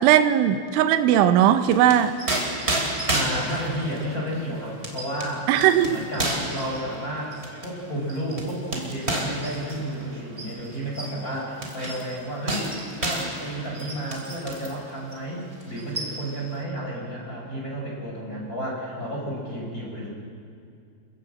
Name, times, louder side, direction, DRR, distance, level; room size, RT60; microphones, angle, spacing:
voice 1, 0.0-2.1 5.5-6.0, right 10 dB, 90° right, 9 dB, 3.3 m, -18 dB
sound 1, 1.5-14.8 15.1-15.3 15.6-16.5, right 1 dB, 15° right, 2.6 m, -31 dB
voice 2, 3.1-5.5 5.9-12.7 13.0-20.1, right 1 dB, 20° left, -2 dB, 5.1 m, -32 dB
28.0 x 17.5 x 7.6 m, 2.4 s
omnidirectional pair, 5.4 m